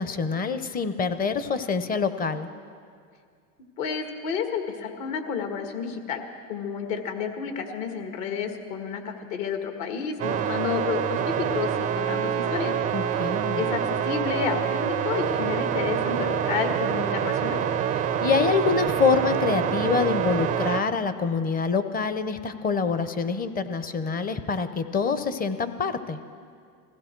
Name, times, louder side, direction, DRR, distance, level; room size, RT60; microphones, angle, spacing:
voice 1, 0.0-2.5 12.9-13.6 18.2-26.2, left 5 dB, 20° left, 11 dB, 0.6 m, -26 dB
voice 2, 3.8-6.2 6.5-12.7 13.5-17.6, left 6 dB, 60° left, 5 dB, 1.9 m, -30 dB
sound 1, 10.2-20.8, right 8 dB, 20° right, 0.4 m, -26 dB
20.5 x 15.5 x 4.5 m, 2.2 s
hypercardioid pair, 110°, 45 cm